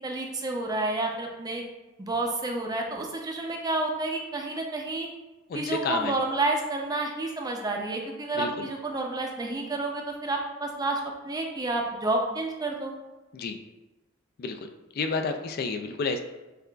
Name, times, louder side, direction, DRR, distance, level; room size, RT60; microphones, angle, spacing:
voice 1, 0.0-1.6 2.0-5.1 5.5-12.9, right 2 dB, 20° right, 2 dB, 0.5 m, -30 dB
voice 2, 5.5-6.1 8.4-8.6 13.3-13.6 14.4-14.6 14.9-16.2, left 4 dB, 50° left, 6 dB, 0.3 m, -30 dB
6.6 x 2.4 x 2.2 m, 1.1 s
head